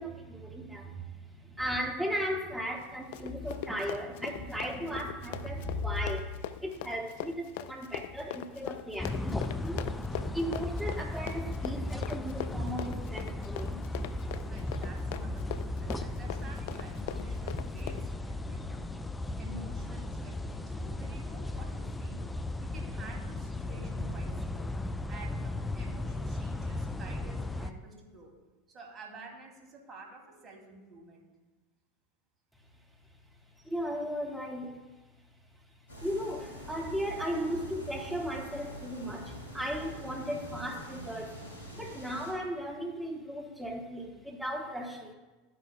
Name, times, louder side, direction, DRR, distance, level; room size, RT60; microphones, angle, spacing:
voice 1, 0.0-6.3 6.6-13.8 33.6-34.8 36.0-41.4 41.8-45.1, equal, 5° right, 0 dB, 1.9 m, -36 dB
Run, 2.8-18.1, left 10 dB, 60° left, 0.4 m, -41 dB
sound 1, 9.0-27.7, left 2 dB, 10° left, 0.6 m, -36 dB
voice 2, 14.5-18.8 19.4-22.2 22.6-24.7 25.1-28.3 28.7-31.3, right 2 dB, 30° right, 0 dB, 2.7 m, -50 dB
sound 2, 35.9-42.3, equal, 80° left, 2.3 m, -45 dB
12.0 x 10.0 x 2.3 m, 1.2 s
figure-of-eight pair, 80°, 0 cm